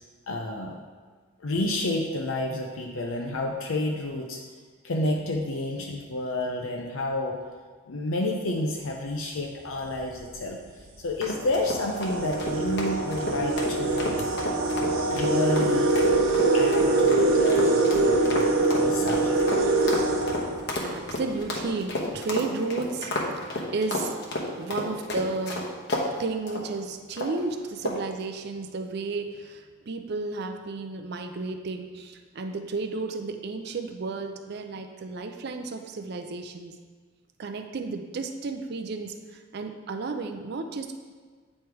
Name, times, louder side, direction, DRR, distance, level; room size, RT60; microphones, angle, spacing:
voice 1, 0.3-0.8 1.4-4.4 4.8-7.4 7.9-14.3 15.1-16.0 16.5-19.4, left 1 dB, 75° left, 1 dB, 0.6 m, -30 dB
sound 1, 9.8-10.0 10.9-11.0 11.4-21.2, right 2 dB, 80° right, 0.8 m, -24 dB
sound 2, 11.2-26.1 26.5-26.7 27.2-27.4 27.8-28.1, left 1 dB, 55° left, 1.0 m, -32 dB
voice 2, 20.7-24.1 24.6-25.7 26.2-36.7 37.4-41.0, right 3 dB, 50° right, 5 dB, 0.5 m, -33 dB
8.5 x 3.2 x 4.6 m, 1.5 s
head